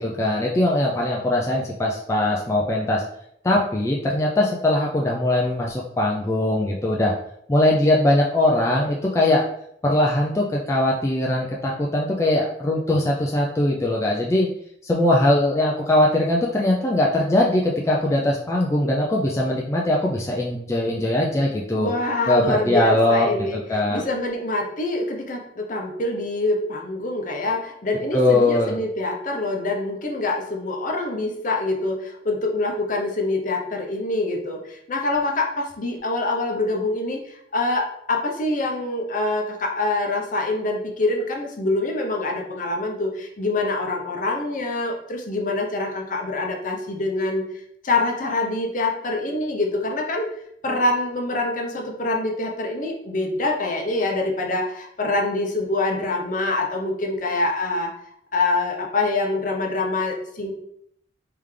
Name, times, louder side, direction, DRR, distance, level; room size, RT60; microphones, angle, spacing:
voice 1, 0.0-3.0 3.4-7.1 7.5-9.4 9.8-14.5 14.8-21.9 22.3-23.3 23.5-24.0 28.1-28.8, left 1 dB, 15° left, -3 dB, 0.4 m, -21 dB
voice 2, 21.7-23.6 23.9-47.4 47.8-50.3 50.6-57.9 58.3-60.5, left 2 dB, 45° left, 1 dB, 0.7 m, -25 dB
3.6 x 3.4 x 3.2 m, 0.71 s
head